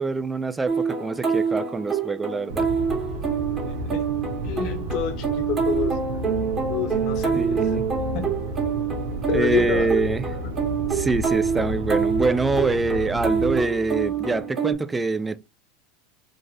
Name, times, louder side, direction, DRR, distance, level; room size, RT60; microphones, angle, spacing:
voice 1, 0.0-2.7 7.3-7.8 9.3-10.2 10.9-15.4, right 3 dB, 15° right, 0.3 m, -25 dB
sound 1, 0.7-14.7, right 6 dB, 30° right, 1.5 m, -26 dB
sound 2, 2.5-13.6, right 2 dB, 90° right, 0.7 m, -32 dB
voice 2, 3.6-4.0 4.4-6.0 6.7-7.8 8.1-8.3 9.3-9.9 10.3-10.4, left 8 dB, 55° left, 1.0 m, -29 dB
sound 3, 7.3-14.4, left 4 dB, 70° right, 1.6 m, -43 dB
3.9 x 2.5 x 3.6 m
hypercardioid pair, 90°, 0 cm